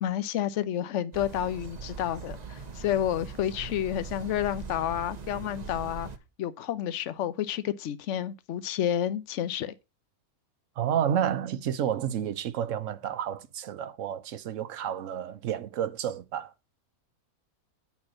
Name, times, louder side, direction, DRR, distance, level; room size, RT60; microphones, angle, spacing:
voice 1, 0.0-6.1 6.4-9.7, left 11 dB, 60° left, 1.0 m, -30 dB
sound 1, 1.1-6.2, right 5 dB, 35° right, 0.9 m, -41 dB
voice 2, 10.8-16.5, right 9 dB, 60° right, 1.1 m, -30 dB
9.6 x 4.4 x 6.3 m
omnidirectional pair, 1.6 m